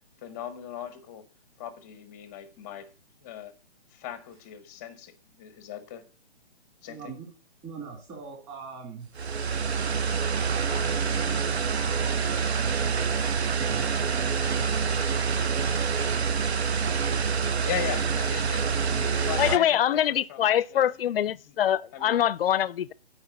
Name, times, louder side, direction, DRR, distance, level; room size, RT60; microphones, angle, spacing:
voice 1, 0.2-1.3 1.6-2.9 3.2-3.5 3.9-6.1 6.8-7.2 17.6-18.7 19.2-19.8 20.1-21.1 21.4-21.5 21.9-22.2, left 11 dB, 15° left, 0.6 m, -38 dB
voice 2, 6.9-7.3 7.6-9.1 10.5-13.2 13.5-17.2 18.9-19.2, right 5 dB, 20° right, 2.2 m, -42 dB
sound 1, 9.1-19.6, right 6 dB, 80° right, 0.7 m, -26 dB
voice 3, 19.4-22.9, left 10 dB, 60° left, 0.4 m, -24 dB
8.8 x 4.5 x 6.7 m
figure-of-eight pair, 140°, 32 cm